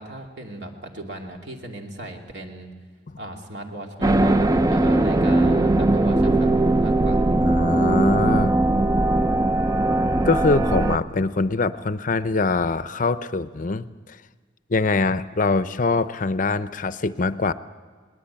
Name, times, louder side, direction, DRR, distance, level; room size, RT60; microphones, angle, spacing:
voice 1, 0.0-2.7 3.2-6.5 6.8-7.2, right 1 dB, 65° right, 1 dB, 2.7 m, -37 dB
sound 1, 4.0-11.0, right 2 dB, 20° right, 0.6 m, -19 dB
voice 2, 7.4-8.6 10.2-14.2 14.7-17.5, left 3 dB, 45° left, 13 dB, 0.6 m, -23 dB
21.0 x 19.5 x 8.7 m, 1.5 s
head